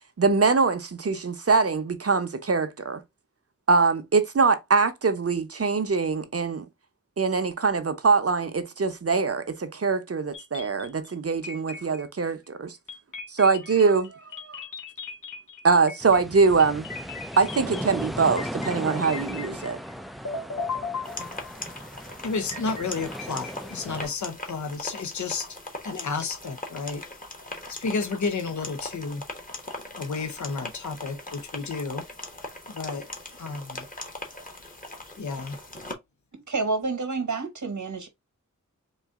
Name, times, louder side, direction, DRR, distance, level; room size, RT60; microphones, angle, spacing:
voice 1, 0.2-3.0 3.7-6.7 7.2-12.8 13.3-14.2 14.5-14.6 15.6-16.9 17.4-19.8, right 4 dB, 50° right, 0.7 m, -23 dB
sound 1, 10.3-11.1 11.4-12.3 12.9-20.0 20.2-21.7 22.5-24.0, left 4 dB, 85° left, 1.1 m, -38 dB
sound 2, 16.0-24.1, equal, ahead, 0.3 m, -37 dB
sound 3, 21.0-35.9, left 1 dB, 25° left, 1.1 m, -40 dB
voice 2, 22.2-25.5 25.8-27.0 27.7-29.2 30.0-32.0 32.7-33.1 33.4-33.9 35.2-35.6, left 4 dB, 70° left, 0.7 m, -31 dB
voice 3, 36.3-38.1, right 3 dB, 70° right, 1.1 m, -29 dB
3.9 x 2.6 x 3.5 m
wide cardioid pair, 70°, 31 cm